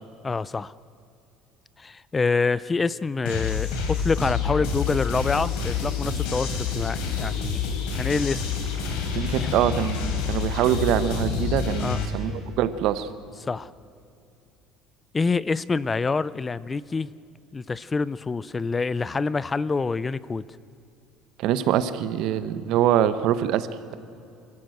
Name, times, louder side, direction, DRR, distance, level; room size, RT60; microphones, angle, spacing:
voice 1, 0.2-0.7 1.8-7.6 7.9-8.4 9.4-9.5 11.8-12.0 13.4-13.7 15.1-17.1 17.5-20.4, left 4 dB, 20° left, 19 dB, 0.4 m, -26 dB
sound 1, 3.2-12.1, left 6 dB, 85° left, 3.6 m, -28 dB
voice 2, 9.1-13.1 21.4-23.7, right 10 dB, 65° right, 13 dB, 1.0 m, -24 dB
26.5 x 14.0 x 7.8 m, 2.7 s
cardioid pair, 140°, 0 cm